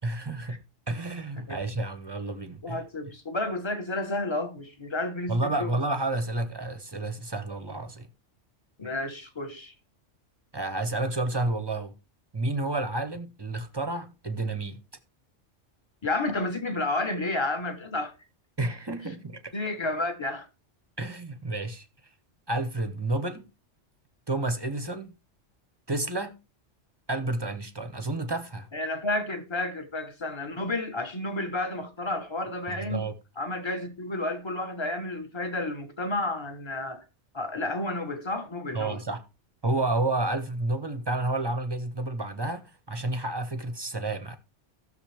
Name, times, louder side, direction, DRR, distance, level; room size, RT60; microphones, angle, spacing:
voice 1, 0.0-0.6 0.9-2.8 5.3-8.1 10.5-11.9 12.3-14.8 18.6-19.6 21.0-21.9 22.5-23.5 24.3-25.1 25.9-26.4 27.1-28.7 32.7-33.1 38.7-39.2 39.6-44.4, right 2 dB, 25° right, 0.8 m, -30 dB
voice 2, 2.6-5.7 8.8-9.7 16.0-18.1 19.5-20.5 28.7-33.1 33.4-37.0 37.3-39.0, left 2 dB, 25° left, 1.2 m, -31 dB
15.5 x 6.6 x 3.4 m
omnidirectional pair, 1.2 m